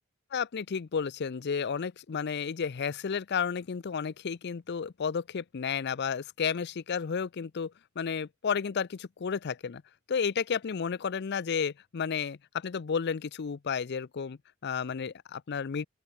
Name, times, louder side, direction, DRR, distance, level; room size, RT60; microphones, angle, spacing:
voice 1, 0.3-9.8 10.1-15.9, left 6 dB, 55° left, 0.5 m, -32 dB
open air
head